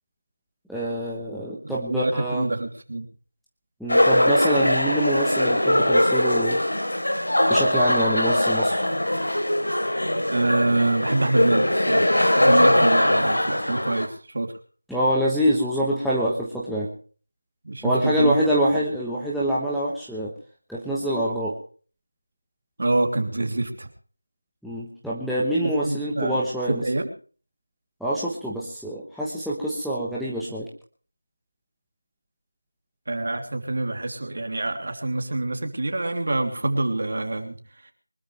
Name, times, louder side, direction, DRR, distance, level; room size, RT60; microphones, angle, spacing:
voice 1, 0.7-2.5 3.8-6.6 7.5-8.8 14.9-16.9 17.8-20.3 20.7-21.5 24.6-26.8 28.0-30.7, right 1 dB, ahead, -8 dB, 1.1 m, -25 dB
voice 2, 1.6-3.1 10.3-14.6 17.6-18.3 22.8-23.9 25.6-26.4 26.7-27.0 33.1-37.6 37.8-37.9, right 2 dB, 45° right, 5 dB, 3.1 m, -26 dB
sound 1, 3.9-14.1, left 1 dB, 80° left, 3.7 m, -21 dB
24.0 x 13.0 x 3.3 m, 0.40 s
figure-of-eight pair, 175°, 0 cm